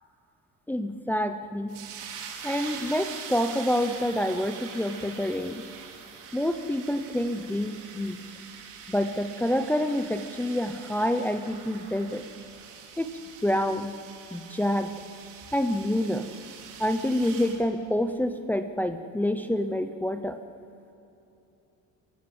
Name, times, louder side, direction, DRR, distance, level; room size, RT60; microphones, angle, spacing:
voice 1, 0.7-1.8 2.4-5.7 6.3-8.2 8.9-12.2 13.0-13.1 13.4-13.9 14.3-14.9 15.5-16.3 16.8-20.4, left 1 dB, 5° left, 7 dB, 0.7 m, -27 dB
sound 1, 1.7-17.6, right 6 dB, 70° right, 3.4 m, -43 dB
28.0 x 16.0 x 7.9 m, 3.0 s
cardioid pair, 165°, 33 cm